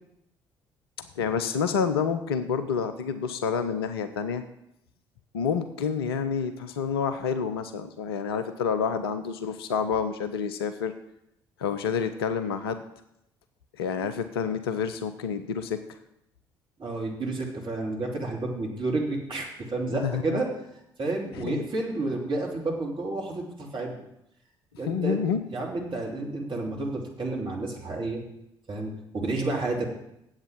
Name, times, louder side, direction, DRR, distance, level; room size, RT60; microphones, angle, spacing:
voice 1, 1.2-4.4 5.3-10.9 11.6-12.8 13.8-15.8 19.9-20.4 21.4-21.7 24.9-25.4, left 6 dB, 75° left, 9 dB, 0.6 m, -28 dB
voice 2, 16.8-20.5 21.0-24.0 24.8-25.2 25.5-28.2 28.7-29.9, right 2 dB, 40° right, -1 dB, 3.2 m, -30 dB
8.8 x 8.0 x 7.4 m, 0.81 s
figure-of-eight pair, 45°, 13 cm